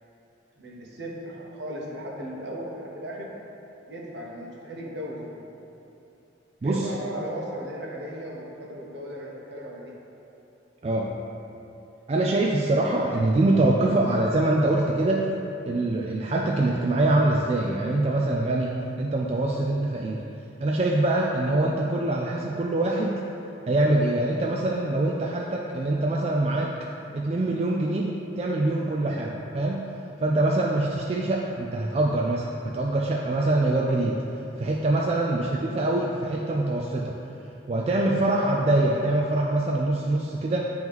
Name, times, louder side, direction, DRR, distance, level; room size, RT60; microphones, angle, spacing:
voice 1, 0.6-3.3 3.9-5.6 6.6-9.9 35.3-35.5, equal, 65° right, -3 dB, 1.0 m, -36 dB
voice 2, 6.6-6.9 10.8-11.1 12.1-15.3 15.6-20.2 20.6-23.2 23.7-26.7 27.1-29.9 30.2-34.2 34.6-37.2 37.7-40.7, right 2 dB, 35° right, -2 dB, 0.3 m, -24 dB
9.1 x 3.1 x 3.5 m, 2.9 s
head